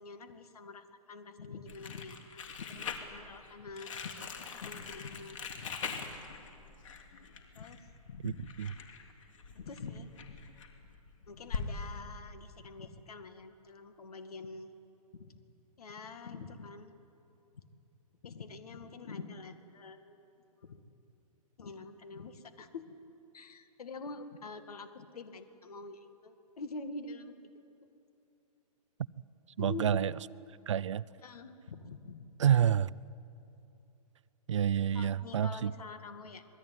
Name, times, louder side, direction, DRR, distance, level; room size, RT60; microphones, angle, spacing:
voice 1, 0.0-4.1 4.5-6.1 7.5-8.5 9.5-10.4 11.3-14.7 15.1-15.3 15.8-16.9 17.5-17.6 18.2-20.3 20.6-20.8 21.6-23.0 23.3-27.3 29.6-30.0 31.2-32.3 34.9-36.4, left 4 dB, 70° left, 8 dB, 2.2 m, -46 dB
Crumpling crinkling, 1.7-11.7, left 5 dB, 55° left, 3.1 m, -43 dB
voice 2, 29.6-30.1 30.7-31.0 32.4-32.9 34.5-35.7, right 9 dB, 50° right, 20 dB, 0.5 m, -28 dB
26.5 x 21.0 x 9.4 m, 2.8 s
hypercardioid pair, 170°, 20 cm